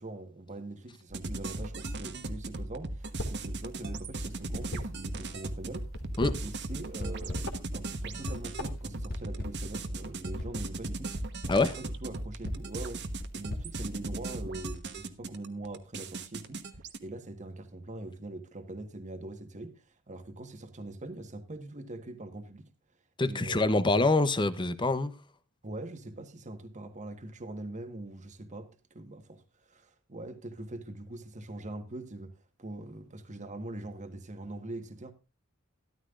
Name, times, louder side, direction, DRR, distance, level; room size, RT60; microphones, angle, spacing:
voice 1, 0.0-5.9 6.4-22.7 23.2-24.1 25.6-35.1, right 2 dB, 35° right, 1.4 m, -43 dB
sound 1, 1.1-17.0, right 2 dB, 55° right, 1.2 m, -38 dB
sound 2, 3.0-3.5 3.8-5.4 5.8-6.9 7.2-7.6 8.1-8.9, left 1 dB, 75° left, 2.4 m, -38 dB
sound 3, 6.2-6.6 7.0-7.6 8.3-8.6 9.1-9.7 10.4-10.6 11.1-11.7 12.4-14.5, left 1 dB, 45° left, 1.6 m, -40 dB
voice 2, 23.2-25.1, left 2 dB, 20° left, 0.8 m, -25 dB
13.5 x 13.0 x 2.5 m
head